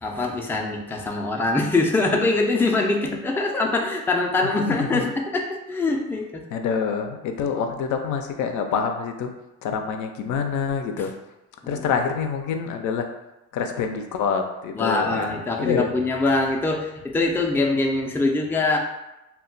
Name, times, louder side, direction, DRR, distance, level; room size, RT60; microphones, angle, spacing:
voice 1, 0.0-6.4 11.6-11.8 14.7-18.8, left 3 dB, 5° left, 1 dB, 0.3 m, -23 dB
voice 2, 4.7-5.1 6.5-9.3 9.6-11.1 11.7-13.1 13.5-15.9, left 6 dB, 75° left, 5 dB, 0.4 m, -26 dB
2.2 x 2.1 x 3.8 m, 0.97 s
cardioid pair, 90°, 30 cm